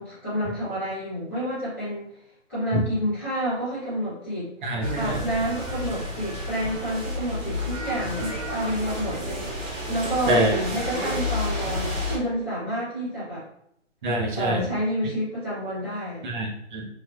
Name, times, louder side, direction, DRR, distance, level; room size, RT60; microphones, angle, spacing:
voice 1, 0.0-2.1 2.5-4.5 4.9-9.5 9.9-13.4 14.3-16.3, equal, ahead, -21 dB, 0.4 m, -29 dB
voice 2, 4.6-5.2 10.3-10.6 14.0-14.6 16.2-16.9, right 1 dB, 40° right, 0 dB, 0.7 m, -25 dB
sound 1, 4.8-12.2, left 1 dB, 80° right, 1.3 m, -30 dB
3.3 x 2.5 x 2.4 m, 0.74 s
figure-of-eight pair, 140°, 38 cm